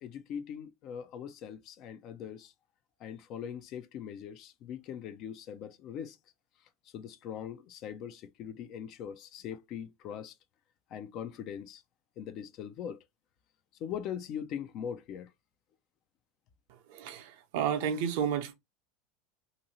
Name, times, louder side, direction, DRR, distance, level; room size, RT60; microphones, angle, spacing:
voice 1, 0.0-2.5 3.0-6.2 6.9-10.3 10.9-11.8 12.2-13.0 13.8-15.3, left 8 dB, 50° left, 0.5 m, -41 dB
voice 2, 16.9-18.5, right 8 dB, 65° right, 0.6 m, -31 dB
2.6 x 2.6 x 2.8 m
hypercardioid pair, 80°, 0 cm